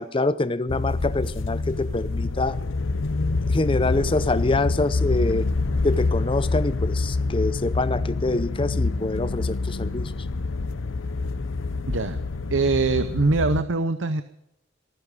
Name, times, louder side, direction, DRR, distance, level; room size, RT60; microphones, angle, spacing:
voice 1, 0.0-2.6 3.5-5.5 5.8-10.1, left 2 dB, 25° left, 15 dB, 0.6 m, -25 dB
sound 1, 0.7-13.6, left 3 dB, 75° left, 0.8 m, -26 dB
voice 2, 11.9-12.2 12.5-14.2, right 3 dB, 70° right, 10 dB, 0.7 m, -22 dB
23.0 x 10.0 x 5.2 m, 0.80 s
head